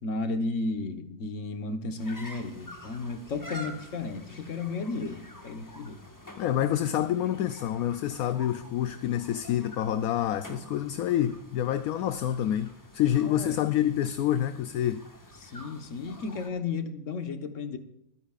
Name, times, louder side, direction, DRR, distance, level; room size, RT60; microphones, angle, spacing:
voice 1, 0.0-6.0 13.2-13.6 15.4-17.8, left 3 dB, 55° left, 1.5 m, -33 dB
sound 1, 2.0-16.5, equal, 15° left, 1.4 m, -48 dB
voice 2, 6.4-15.0, left 11 dB, 75° left, 1.1 m, -27 dB
24.0 x 10.0 x 2.4 m
omnidirectional pair, 1.6 m